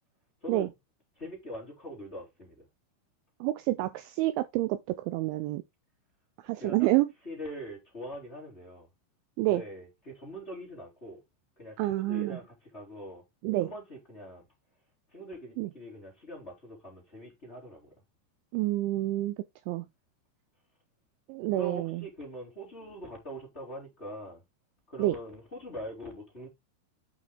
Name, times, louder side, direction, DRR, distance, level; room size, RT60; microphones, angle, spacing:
voice 1, 1.2-2.7 6.6-6.9 7.2-8.9 9.4-11.2 11.6-13.2 13.6-14.4 15.1-17.9 21.5-24.4 24.9-26.5, equal, 15° left, 3.2 m, -43 dB
voice 2, 3.4-5.6 6.4-7.1 9.4-9.6 11.8-12.4 13.4-13.7 15.6-15.7 18.5-19.4 19.7-19.9 21.3-22.0 25.0-25.2, right 17 dB, 80° right, 2.8 m, -28 dB
8.6 x 5.9 x 3.5 m
omnidirectional pair, 5.7 m